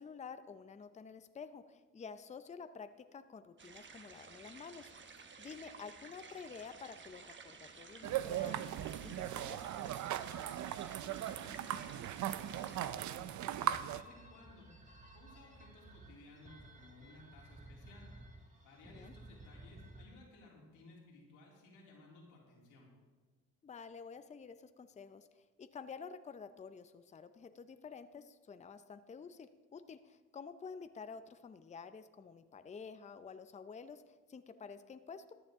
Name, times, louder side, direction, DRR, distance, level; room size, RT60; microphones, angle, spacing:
voice 1, 0.0-8.7 9.0-9.7 18.9-19.1 23.6-35.3, left 5 dB, 25° left, 11 dB, 0.5 m, -50 dB
sound 1, 3.6-12.9, right 5 dB, 40° right, 1.0 m, -54 dB
sound 2, 8.0-14.0, right 12 dB, 70° right, 0.6 m, -38 dB
voice 2, 10.2-14.7 15.1-18.1 18.6-22.9, left 2 dB, 90° left, -3 dB, 3.3 m, -59 dB
sound 3, 13.6-20.1, right 1 dB, 25° right, 1.8 m, -56 dB
14.5 x 9.4 x 3.6 m, 1.4 s
cardioid pair, 90°, 30 cm